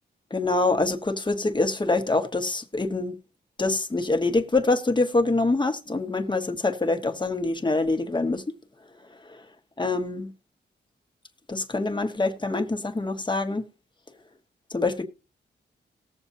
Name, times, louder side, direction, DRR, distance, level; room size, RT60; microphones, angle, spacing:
voice 1, 0.3-3.2 3.6-8.4 9.3-9.4 9.8-10.3 11.5-13.6 14.7-15.1, left 2 dB, 25° left, 1.5 m, -25 dB
19.0 x 7.1 x 2.7 m
cardioid pair, 65°, 19 cm